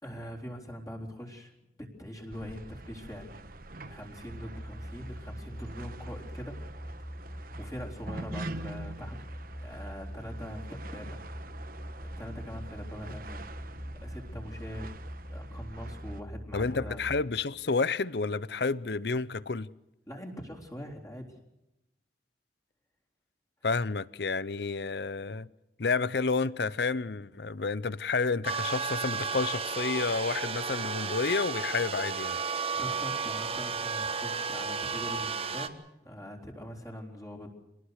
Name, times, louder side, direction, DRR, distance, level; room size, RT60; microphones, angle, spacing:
voice 1, 0.0-1.5 1.8-3.3 3.9-6.6 7.3-9.3 9.6-11.2 12.0-13.5 14.0-14.9 15.3-17.0 20.1-21.4 32.8-35.7 36.0-37.5, equal, 20° left, 3.9 m, -43 dB
sound 1, 2.3-16.2, right 2 dB, 50° right, 1.3 m, -45 dB
sound 2, 4.2-17.2, equal, ahead, 2.9 m, -43 dB
voice 2, 16.5-19.7 23.6-25.5 25.8-32.4, left 4 dB, 65° left, 0.7 m, -30 dB
sound 3, 28.4-35.7, right 5 dB, 35° right, 1.4 m, -33 dB
26.0 x 19.5 x 6.5 m
head